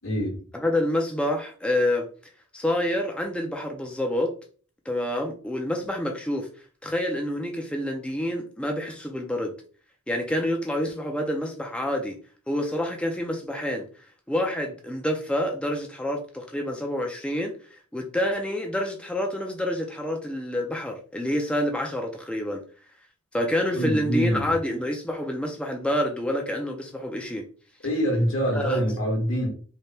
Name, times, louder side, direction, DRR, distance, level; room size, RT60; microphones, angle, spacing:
voice 1, 0.0-0.4 23.7-24.5 27.8-29.5, equal, 70° left, 1.4 m, -25 dB
voice 2, 0.5-2.1 2.5-4.3 4.9-6.5 6.8-9.5 10.1-12.2 12.5-13.9 14.3-17.5 17.9-22.6 23.3-27.4 28.5-28.8, left 1 dB, 5° left, 0.4 m, -27 dB
3.3 x 2.1 x 4.2 m
head